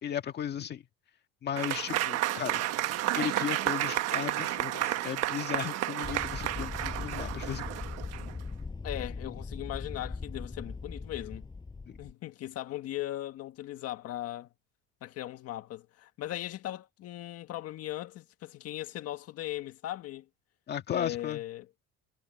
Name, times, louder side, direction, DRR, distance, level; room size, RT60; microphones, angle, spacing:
voice 1, 0.0-0.8 1.4-2.6 3.1-7.6 11.9-12.0 20.7-21.4, left 9 dB, 35° left, 1.8 m, -35 dB
Applause / Crowd, 1.6-8.4, right 14 dB, 55° right, 1.3 m, -31 dB
sound 1, 6.0-12.1, left 4 dB, 15° left, 6.5 m, -39 dB
voice 2, 8.8-11.5 12.0-14.5 15.0-20.3 20.9-21.8, left 14 dB, 50° left, 1.7 m, -38 dB
cardioid pair, 170°, 30 cm